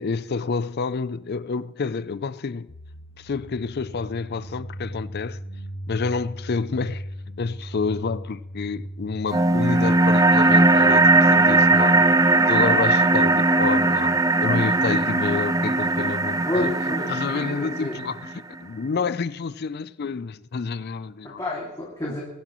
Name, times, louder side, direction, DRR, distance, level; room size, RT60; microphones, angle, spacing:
voice 1, 0.0-2.7 3.2-5.4 5.9-7.1 7.4-12.1 12.5-16.7 17.1-21.4, left 5 dB, 45° left, 0.4 m, -29 dB
sound 1, 2.7-10.4, equal, 75° left, 1.5 m, -38 dB
sound 2, 9.3-18.3, right 2 dB, 15° right, 0.4 m, -19 dB
voice 2, 16.5-18.0 21.4-22.2, left 1 dB, 15° left, 2.4 m, -30 dB
21.5 x 11.5 x 3.1 m
head